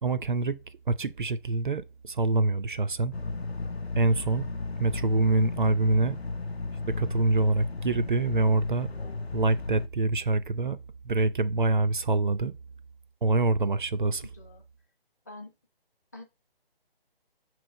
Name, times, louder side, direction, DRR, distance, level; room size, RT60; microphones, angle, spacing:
voice 1, 0.0-0.6 0.9-3.1 4.0-4.5 4.8-6.2 6.9-8.9 9.3-10.8 11.0-12.5 13.2-14.3, right 3 dB, 55° right, 0.5 m, -25 dB
sound 1, 3.1-9.9, left 3 dB, 85° left, 0.7 m, -34 dB
voice 2, 14.0-14.6 15.3-15.5 16.1-16.2, left 2 dB, 15° left, 0.6 m, -46 dB
6.0 x 3.1 x 5.0 m
figure-of-eight pair, 145°, 31 cm